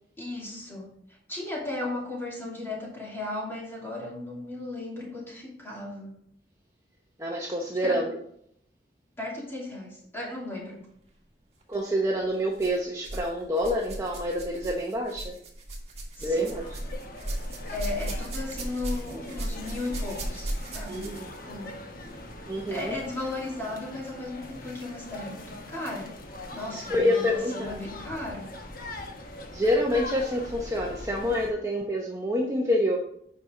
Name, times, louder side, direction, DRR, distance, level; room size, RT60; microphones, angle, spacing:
voice 1, 0.2-0.9 1.3-6.2 7.8-8.0 9.2-10.8 16.2-16.5 17.7-21.1 21.4-21.7 22.7-26.1 26.5-28.5, left 2 dB, 15° left, -4 dB, 2.7 m, -36 dB
voice 2, 7.2-8.2 11.7-15.3 16.2-16.8 20.9-21.3 22.5-23.0 26.7-27.8 29.5-33.0, equal, 15° right, -1 dB, 0.8 m, -27 dB
sound 1, 11.6-11.8 12.5-13.3 13.6-21.4 22.3-22.4 23.2-23.3, right 1 dB, 35° right, 1.8 m, -36 dB
sound 2, 16.3-31.5, left 2 dB, 55° left, 1.1 m, -42 dB
8.5 x 5.8 x 3.7 m, 0.70 s
head